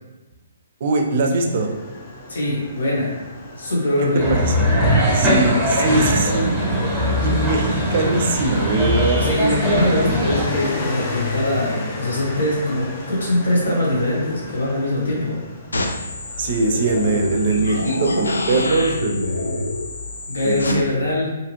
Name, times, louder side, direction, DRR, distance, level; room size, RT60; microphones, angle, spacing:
voice 1, 0.8-1.7 4.3-4.5 5.1-6.6 7.2-9.3 16.4-19.6 20.4-21.0, right 2 dB, 50° right, 3 dB, 0.4 m, -21 dB
Motorcycle, 1.5-20.3, left 2 dB, 35° left, 0.5 m, -33 dB
voice 2, 2.3-3.2 3.6-4.4 5.7-6.0 9.2-15.4 20.3-21.3, left 1 dB, 75° left, -4 dB, 1.1 m, -22 dB
sound 1, 4.2-10.4, equal, 5° right, 0.8 m, -20 dB
sound 2, 15.7-20.7, left 2 dB, 90° left, 0.4 m, -26 dB
2.7 x 2.4 x 2.9 m, 1.1 s
hypercardioid pair, 140°, 0 cm